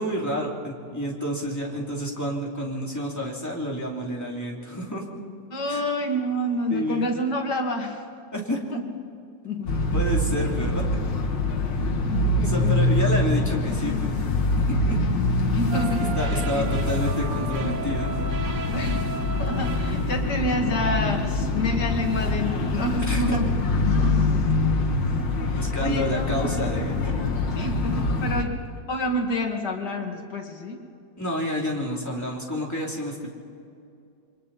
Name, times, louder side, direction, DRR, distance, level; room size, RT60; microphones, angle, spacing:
voice 1, 0.0-5.0 5.7-5.8 6.7-7.1 8.3-8.6 9.9-11.0 12.3-14.1 14.5-15.0 16.2-18.2 23.1-23.4 25.3-27.1 31.2-33.3, equal, 10° left, -2 dB, 3.0 m, -29 dB
voice 2, 5.5-8.0 8.7-8.8 9.4-10.0 11.5-12.8 13.7-14.2 15.5-16.7 18.7-23.5 23.8-24.5 25.4-26.5 27.6-28.6 28.9-30.8, left 1 dB, 65° left, 2 dB, 2.8 m, -29 dB
sound 1, 9.7-28.4, left 2 dB, 85° left, 2.3 m, -24 dB
sound 2, 15.7-20.5, right 6 dB, 75° right, 1.7 m, -35 dB
28.0 x 23.5 x 4.2 m, 2.5 s
omnidirectional pair, 1.9 m